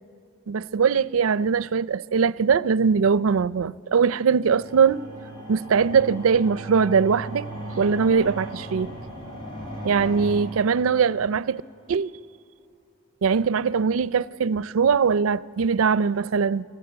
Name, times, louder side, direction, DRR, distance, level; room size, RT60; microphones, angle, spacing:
voice 1, 0.5-5.1 5.5-7.5 7.8-8.9 9.8-11.6 11.9-12.1 13.2-16.6, right 6 dB, 90° right, 0.4 m, -21 dB
sound 1, 4.5-11.5, right 1 dB, 20° left, 5.3 m, -37 dB
24.5 x 15.0 x 8.8 m
head